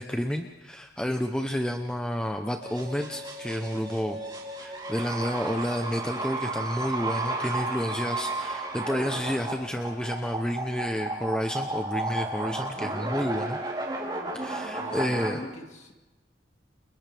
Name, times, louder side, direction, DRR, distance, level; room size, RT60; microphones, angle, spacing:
voice 1, 0.0-4.2 4.6-13.6 14.3-15.4, equal, 5° left, 3 dB, 0.9 m, -30 dB
sound 1, 2.6-15.3, right 2 dB, 25° right, 3.6 m, -33 dB
voice 2, 14.8-15.9, left 1 dB, 40° left, 3 dB, 2.4 m, -41 dB
30.0 x 29.5 x 3.6 m, 1.1 s
head